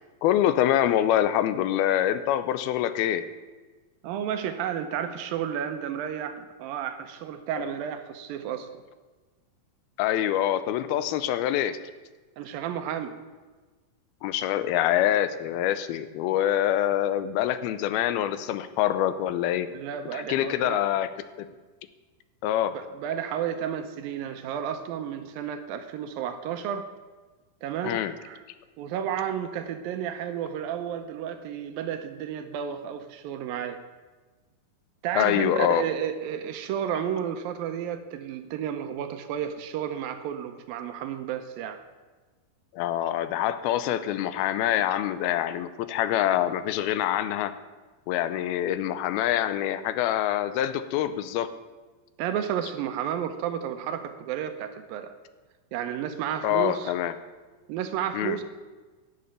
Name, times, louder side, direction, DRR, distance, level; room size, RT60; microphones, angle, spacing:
voice 1, 0.2-3.2 7.5-7.7 10.0-11.8 14.2-19.7 20.1-21.1 21.4-21.5 22.4-22.7 27.8-28.1 35.2-35.8 42.7-47.5 48.1-51.5 56.4-57.1 58.1-58.4, left 11 dB, 85° left, 12 dB, 2.5 m, -25 dB
voice 2, 4.0-8.7 12.4-13.2 19.7-20.8 22.7-26.9 27.6-28.4 28.8-33.8 35.0-41.8 52.2-55.1 55.7-57.0 57.7-58.4, right 9 dB, 75° right, 8 dB, 2.4 m, -32 dB
11.5 x 6.9 x 8.9 m, 1.3 s
omnidirectional pair, 4.4 m